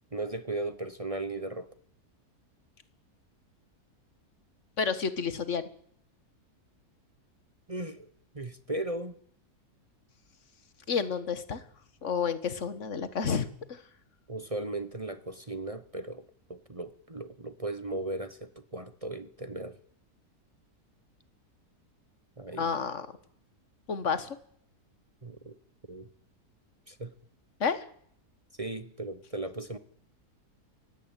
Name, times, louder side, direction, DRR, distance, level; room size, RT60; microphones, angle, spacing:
voice 1, 0.1-1.7 7.7-8.1 8.3-9.1 14.3-16.2 16.5-19.7 22.4-22.7 25.2-25.6 25.9-26.1 26.9-27.1 28.6-29.8, right 2 dB, 25° right, 11 dB, 1.1 m, -36 dB
voice 2, 4.8-5.6 10.9-11.6 12.0-13.8 22.6-23.1 23.9-24.4 27.6-27.9, left 6 dB, 50° left, 13 dB, 1.8 m, -30 dB
23.5 x 17.0 x 9.1 m, 0.65 s
omnidirectional pair, 1.7 m